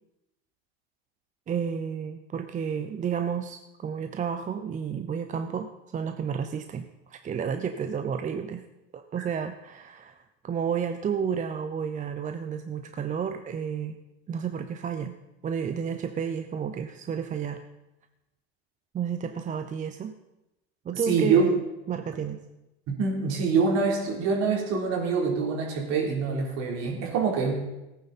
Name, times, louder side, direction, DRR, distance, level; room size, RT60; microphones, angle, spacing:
voice 1, 1.5-8.6 8.9-14.0 14.3-15.2 15.4-17.6 18.9-20.2 20.8-21.6 21.9-22.4, right 7 dB, 25° right, 8 dB, 0.7 m, -31 dB
voice 2, 21.1-21.5 22.9-27.6, right 5 dB, 55° right, 0 dB, 3.7 m, -25 dB
17.0 x 9.4 x 4.3 m, 0.96 s
supercardioid pair, 110°, 32 cm